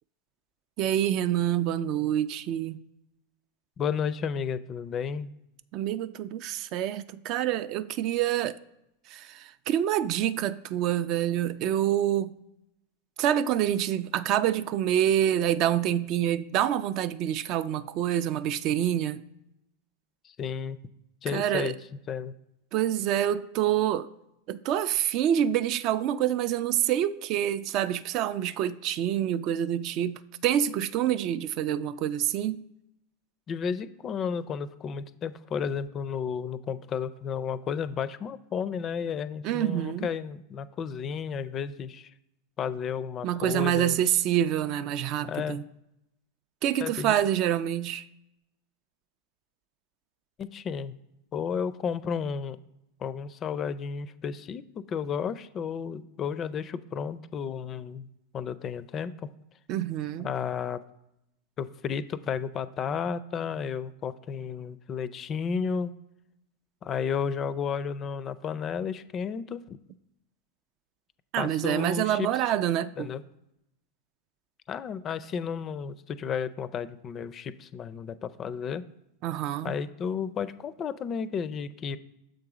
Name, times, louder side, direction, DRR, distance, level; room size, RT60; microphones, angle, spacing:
voice 1, 0.8-2.8 5.7-8.6 9.1-12.3 13.2-19.2 21.3-21.7 22.7-24.1 24.5-32.6 39.4-40.1 43.2-45.6 46.6-48.1 59.7-60.3 71.3-73.1 79.2-79.8, right 11 dB, 50° right, 0.3 m, -27 dB
voice 2, 3.8-5.3 20.2-20.8 21.2-21.8 22.1-22.3 33.5-42.1 42.6-44.0 45.3-45.6 46.8-47.2 50.4-51.0 51.3-52.6 53.0-58.1 58.3-59.3 60.2-60.8 61.6-65.9 66.8-69.8 71.4-72.5 73.0-73.2 74.7-78.8 79.6-82.0, left 6 dB, 35° left, 0.4 m, -32 dB
6.6 x 3.9 x 4.8 m
hypercardioid pair, 110°, 0 cm